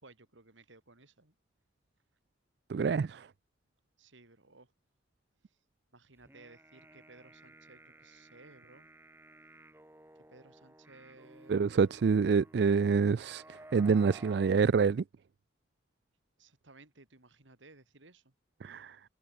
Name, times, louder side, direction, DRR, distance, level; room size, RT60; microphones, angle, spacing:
voice 1, 0.0-1.3 4.0-4.7 5.9-8.9 10.3-11.7 16.4-18.3, right 3 dB, 85° right, 2.8 m, -58 dB
voice 2, 2.7-3.3 11.5-15.0 18.6-19.0, right 5 dB, 60° right, 0.4 m, -27 dB
sound 1, 6.2-14.6, right 1 dB, 10° right, 1.4 m, -56 dB
head